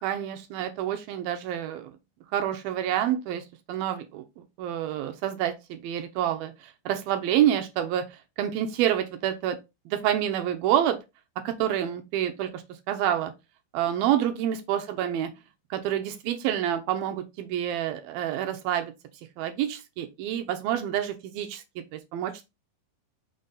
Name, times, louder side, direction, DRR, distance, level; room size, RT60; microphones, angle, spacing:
voice 1, 0.0-1.9 2.3-4.2 4.6-8.1 8.4-9.6 9.9-11.0 11.4-13.3 13.7-15.3 15.7-18.9 19.4-21.6 21.9-22.5, right 11 dB, 80° right, 2.5 m, -28 dB
6.0 x 4.0 x 3.9 m
omnidirectional pair, 4.5 m